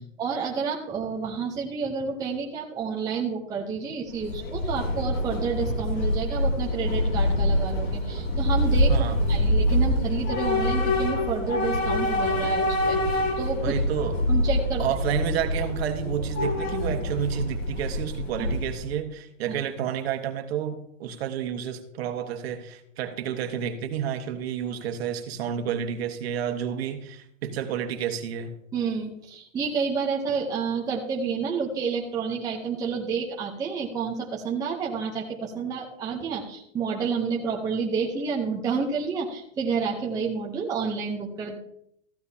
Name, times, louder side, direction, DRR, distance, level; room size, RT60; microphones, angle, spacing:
voice 1, 0.0-9.0 9.3-13.7 14.3-14.8 18.4-18.5 19.5-19.6 28.7-41.6, right 5 dB, 10° right, -1 dB, 0.8 m, -30 dB
Train / Subway metro underground, 4.1-18.9, left 1 dB, 65° left, 3.3 m, -25 dB
voice 2, 8.9-9.2 13.6-14.2 14.8-28.5, right 9 dB, 50° right, 6 dB, 1.5 m, -30 dB
14.5 x 11.5 x 2.8 m, 0.73 s
hypercardioid pair, 155°, 39 cm